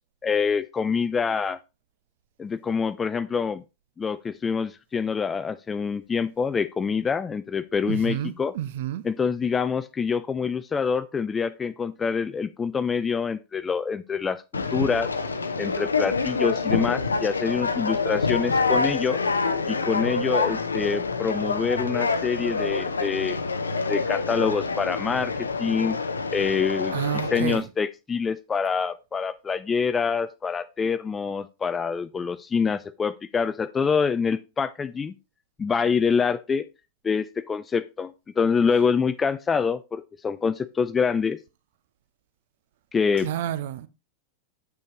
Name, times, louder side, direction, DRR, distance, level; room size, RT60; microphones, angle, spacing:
voice 1, 0.2-1.6 2.4-3.6 4.0-8.5 9.0-15.1 15.6-19.2 19.7-23.4 23.9-26.0 26.3-26.9 27.3-35.1 35.6-36.7 37.0-41.4 42.9-43.3, left 5 dB, 20° left, 0.4 m, -26 dB
voice 2, 7.9-9.1 26.9-27.7 43.2-43.9, right 12 dB, 55° right, 0.5 m, -30 dB
Conversation, 14.5-27.6, left 4 dB, 75° left, 0.7 m, -27 dB
8.2 x 6.4 x 3.1 m
figure-of-eight pair, 90°, 0 cm